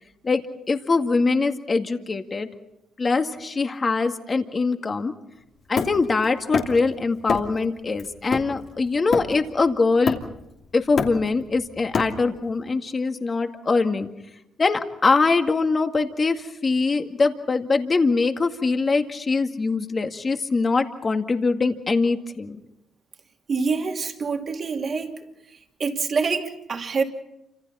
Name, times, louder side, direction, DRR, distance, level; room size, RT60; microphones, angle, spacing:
voice 1, 0.7-2.5 3.0-5.1 5.7-10.2 10.7-14.1 14.6-22.6, left 4 dB, 35° left, 6 dB, 2.0 m, -23 dB
Hammer, 5.8-6.9 7.3-7.6 8.0-9.6 10.1-10.5 10.8-12.5, left 6 dB, 60° left, 2.8 m, -27 dB
voice 2, 23.5-25.1 25.8-27.0, right 5 dB, 45° right, 3 dB, 2.8 m, -26 dB
29.0 x 26.5 x 4.3 m, 0.85 s
cardioid pair, 90°, 0 cm